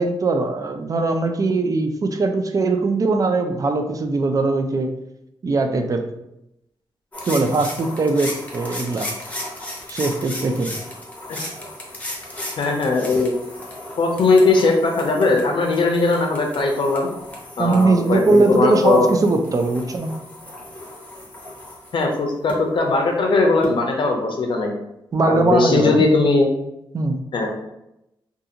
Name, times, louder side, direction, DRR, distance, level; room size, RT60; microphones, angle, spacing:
voice 1, 0.0-4.9 5.4-6.1 7.3-9.1 9.9-10.7 17.6-20.2 25.1-26.0 26.9-27.2, right 3 dB, 40° right, 6 dB, 0.3 m, -20 dB
sound 1, 7.1-22.5 23.6-23.7, left 1 dB, 15° left, 0.7 m, -35 dB
voice 2, 12.6-13.3 14.0-17.1 17.6-19.1 21.9-24.7 25.2-26.5 27.3-27.5, left 3 dB, 65° left, 2 dB, 0.5 m, -19 dB
2.5 x 2.4 x 2.7 m, 0.85 s
cardioid pair, 95°, 9 cm